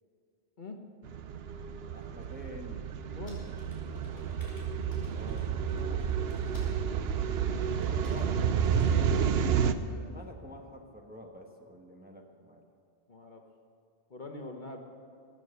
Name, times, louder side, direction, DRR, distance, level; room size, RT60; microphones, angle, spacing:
sound 1, 1.0-9.7, right 7 dB, 65° right, 0.9 m, -30 dB
voice 1, 1.9-2.9 5.1-5.5 7.8-8.7 10.0-12.6, equal, 10° right, 1 dB, 1.1 m, -48 dB
voice 2, 3.1-3.5 5.7-6.0 9.0-9.3 13.1-13.4 14.1-14.8, left 2 dB, 45° left, 3 dB, 1.1 m, -44 dB
sound 2, 3.3-6.8 7.7-8.3 8.6-9.0, equal, 15° left, 4.9 m, -58 dB
18.0 x 7.5 x 8.1 m, 2.4 s
omnidirectional pair, 1.2 m